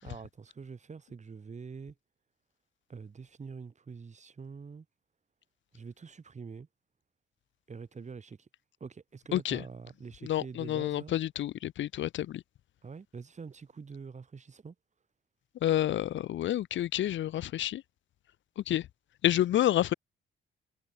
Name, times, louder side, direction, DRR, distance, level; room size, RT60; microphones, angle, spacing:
voice 1, 0.0-1.9 2.9-4.9 5.7-6.7 7.7-8.5 8.8-11.1 12.8-14.7, right 5 dB, 35° right, 8.0 m, -45 dB
voice 2, 9.3-9.6 10.2-12.4 15.6-17.8 18.7-18.8 19.2-19.9, left 12 dB, 70° left, 1.2 m, -29 dB
cardioid pair, 90°, 20 cm